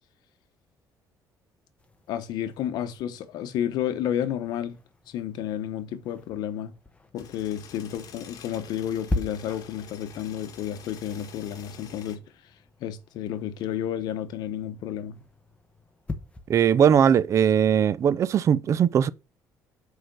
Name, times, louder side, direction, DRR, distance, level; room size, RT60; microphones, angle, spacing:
sound 1, 1.8-18.5, left 2 dB, 15° left, 1.2 m, -42 dB
voice 1, 2.1-4.8 5.1-6.7 7.1-12.2 12.8-15.2, left 10 dB, 80° left, 1.0 m, -31 dB
sound 2, 7.1-12.2, left 7 dB, 60° left, 1.7 m, -47 dB
voice 2, 16.5-19.1, right 8 dB, 45° right, 0.5 m, -20 dB
6.3 x 5.0 x 6.1 m
cardioid pair, 115°, 7 cm